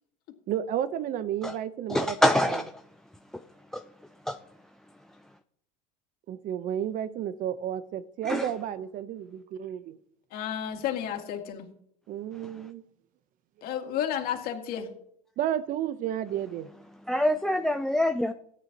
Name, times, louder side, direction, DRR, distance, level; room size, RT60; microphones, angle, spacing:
voice 1, 0.5-2.7 6.3-10.0 12.1-12.8 15.4-16.7, right 10 dB, 45° right, 14 dB, 0.9 m, -32 dB
voice 2, 1.9-2.6 3.7-3.8 4.3-4.4 8.3-8.4 17.1-18.3, left 1 dB, 5° left, 10 dB, 0.5 m, -24 dB
voice 3, 10.3-11.7 13.6-14.9, left 9 dB, 55° left, 3 dB, 2.2 m, -32 dB
18.0 x 9.2 x 3.0 m, 0.70 s
supercardioid pair, 115°, 18 cm